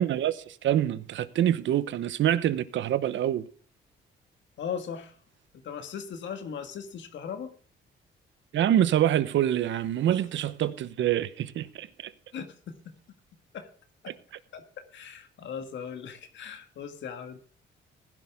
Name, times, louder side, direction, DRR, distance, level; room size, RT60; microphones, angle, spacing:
voice 1, 0.0-3.5 8.5-11.9, right 11 dB, 70° right, 0.9 m, -25 dB
voice 2, 4.6-5.1 5.5-7.5 10.1-10.2 12.3-13.0 13.5-13.7 14.0-14.1 14.5-17.4, left 7 dB, 70° left, 1.7 m, -38 dB
16.0 x 11.0 x 3.6 m
cardioid pair, 90°, 20 cm